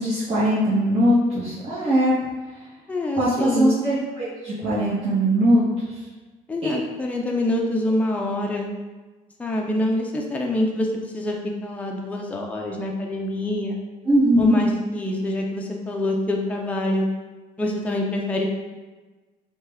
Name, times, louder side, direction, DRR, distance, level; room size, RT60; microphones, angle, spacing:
voice 1, 0.0-2.2 3.2-5.6 6.6-6.7 14.0-14.6, equal, 35° right, -11 dB, 1.0 m, -20 dB
voice 2, 2.9-3.8 6.5-8.7 9.4-10.9 11.1-13.8 14.4-17.1 17.6-18.5, left 1 dB, 10° left, 0 dB, 0.4 m, -25 dB
3.2 x 2.2 x 3.4 m, 1.3 s
cardioid pair, 110°, 17 cm